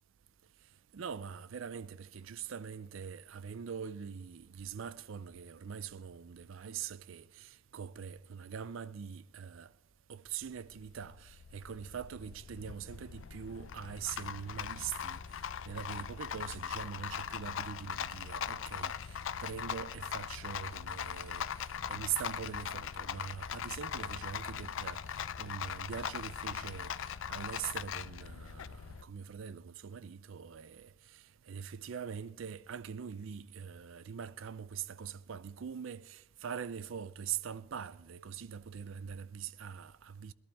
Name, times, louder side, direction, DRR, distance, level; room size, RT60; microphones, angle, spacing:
voice 1, 0.9-9.7 10.1-15.2 15.7-40.3, right 8 dB, 70° right, 0.4 m, -43 dB
Rattle, 10.4-29.0, left 8 dB, 65° left, 0.4 m, -40 dB
21.0 x 12.5 x 3.5 m
head